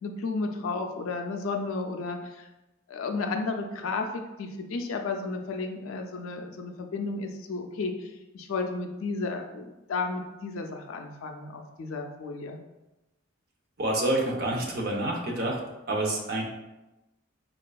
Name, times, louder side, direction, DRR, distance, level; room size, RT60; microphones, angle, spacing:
voice 1, 0.0-2.5 2.9-12.6, left 3 dB, 85° left, 4 dB, 0.4 m, -33 dB
voice 2, 13.8-15.6 15.9-16.4, right 1 dB, 50° right, 0 dB, 0.6 m, -27 dB
4.3 x 2.3 x 2.3 m, 1.0 s
head